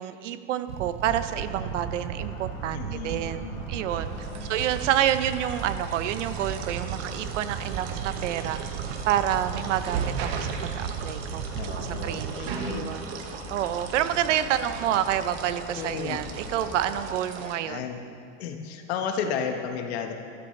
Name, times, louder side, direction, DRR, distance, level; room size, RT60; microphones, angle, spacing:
voice 1, 0.0-8.6 9.1-11.4 11.7-13.0 13.5-17.9, right 11 dB, 85° right, 11 dB, 0.8 m, -28 dB
sound 1, 0.7-12.3, right 9 dB, 30° right, 0.5 m, -36 dB
sound 2, 1.2-17.1, equal, 5° left, 3.4 m, -42 dB
voice 2, 2.7-3.6 4.1-4.7 11.5-13.0 14.4-14.6 15.7-16.2 17.4-18.0 18.4-20.1, left 7 dB, 60° left, 4 dB, 1.5 m, -34 dB
sound 3, 4.0-17.5, right 6 dB, 55° right, 1.1 m, -38 dB
15.0 x 13.0 x 3.3 m, 2.3 s
supercardioid pair, 160°, 36 cm